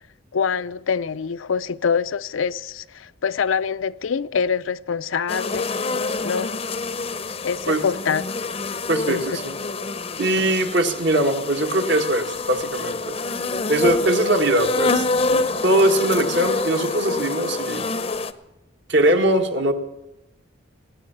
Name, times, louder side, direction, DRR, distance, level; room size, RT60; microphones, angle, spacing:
voice 1, 0.3-5.7 6.2-6.5 7.4-8.5 9.1-9.2, left 6 dB, 75° left, 0.5 m, -25 dB
sound 1, 5.3-18.3, left 3 dB, 30° left, 0.6 m, -26 dB
voice 2, 8.9-9.6 10.2-13.2 13.7-15.1 15.6-17.8 18.9-19.7, right 1 dB, 60° right, 1.6 m, -21 dB
19.0 x 9.0 x 8.6 m
head